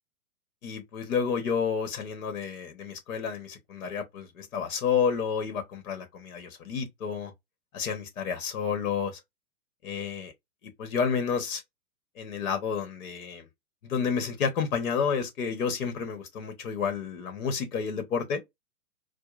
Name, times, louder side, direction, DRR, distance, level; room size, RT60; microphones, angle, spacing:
voice 1, 0.6-7.3 7.7-9.2 9.8-10.3 10.8-11.6 12.2-13.5 13.8-18.4, left 6 dB, 60° left, 1.1 m, -30 dB
4.6 x 2.2 x 2.4 m
hypercardioid pair, 120°, 44 cm